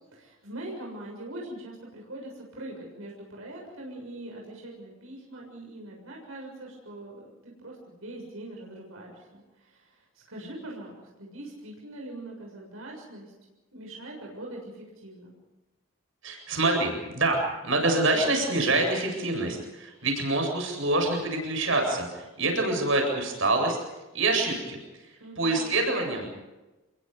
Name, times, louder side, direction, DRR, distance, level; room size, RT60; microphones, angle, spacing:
voice 1, 0.0-13.3 13.7-15.4 25.2-25.7, right 1 dB, 85° right, -1 dB, 7.0 m, -42 dB
voice 2, 16.2-23.8 24.1-26.3, right 2 dB, 70° right, 3 dB, 7.9 m, -26 dB
29.0 x 23.0 x 5.3 m, 1.1 s
head